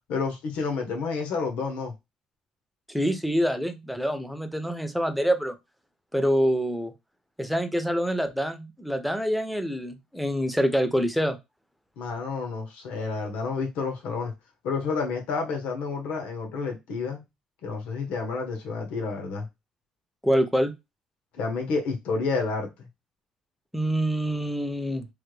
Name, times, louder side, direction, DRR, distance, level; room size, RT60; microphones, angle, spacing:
voice 1, 0.1-1.9 12.0-14.3 14.6-17.2 17.6-19.5 21.3-22.9, left 4 dB, 80° left, 0.9 m, -30 dB
voice 2, 2.9-5.5 6.1-6.9 7.4-11.4 20.2-20.7 23.7-25.1, equal, ahead, 0.4 m, -26 dB
3.3 x 2.2 x 3.1 m
cardioid pair, 165°, 2 cm